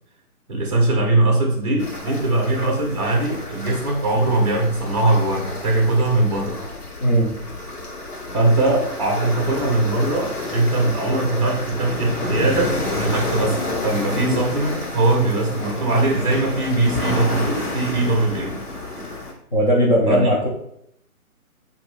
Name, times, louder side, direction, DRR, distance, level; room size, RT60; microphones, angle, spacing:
voice 1, 0.5-6.6 8.3-18.6 20.1-20.3, right 2 dB, 25° right, -2 dB, 0.5 m, -21 dB
sound 1, 1.8-19.3, left 2 dB, 90° left, 1.3 m, -30 dB
voice 2, 7.0-7.5 19.5-20.5, equal, 35° left, -3 dB, 0.5 m, -18 dB
3.3 x 2.6 x 3.1 m, 0.72 s
hypercardioid pair, 150°, 44 cm